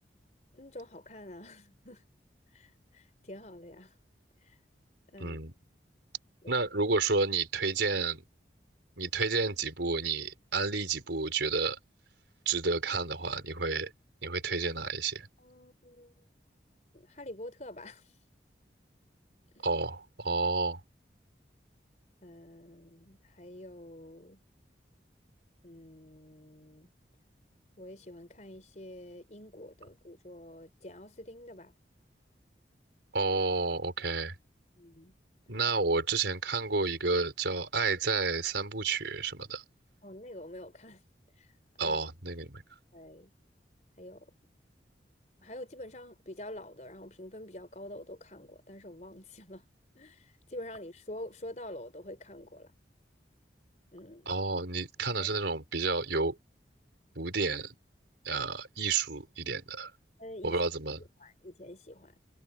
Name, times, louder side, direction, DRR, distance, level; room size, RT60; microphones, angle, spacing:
voice 1, 0.5-2.0 2.5-3.9 5.1-5.4 6.4-6.5 15.4-16.1 16.9-18.0 19.6-19.7 22.2-24.4 25.6-26.9 27.8-31.7 34.8-35.1 40.0-41.0 41.8-42.0 42.9-43.3 44.0-44.3 45.4-49.6 50.0-52.7 53.9-54.4 55.2-55.3 60.2-60.6 61.2-62.1, left 1 dB, 40° left, 3.9 m, -47 dB
voice 2, 5.2-5.5 6.5-8.2 9.0-11.8 12.5-13.9 14.2-15.3 19.6-20.8 33.1-34.3 35.5-39.6 41.8-42.6 54.3-56.4 57.2-57.7 58.2-59.9 60.4-61.0, right 4 dB, 90° right, 4.4 m, -30 dB
head